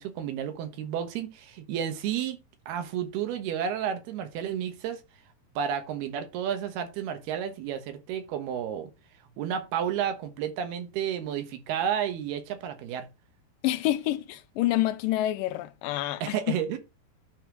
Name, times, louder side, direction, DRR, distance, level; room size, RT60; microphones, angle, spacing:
voice 1, 0.0-2.4 2.7-5.0 5.6-8.9 9.4-13.1 16.2-16.8, right 9 dB, 75° right, 3.2 m, -31 dB
voice 2, 13.6-16.4, left 14 dB, 80° left, 2.1 m, -27 dB
11.0 x 4.3 x 4.6 m
omnidirectional pair, 4.7 m